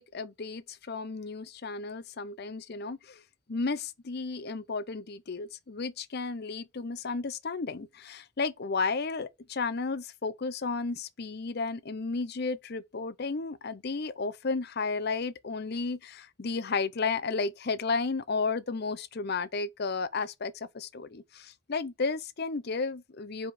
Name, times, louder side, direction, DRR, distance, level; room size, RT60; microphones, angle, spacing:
voice 1, 0.0-3.2 3.5-23.5, left 4 dB, 50° left, 0.6 m, -33 dB
5.0 x 4.7 x 5.4 m
head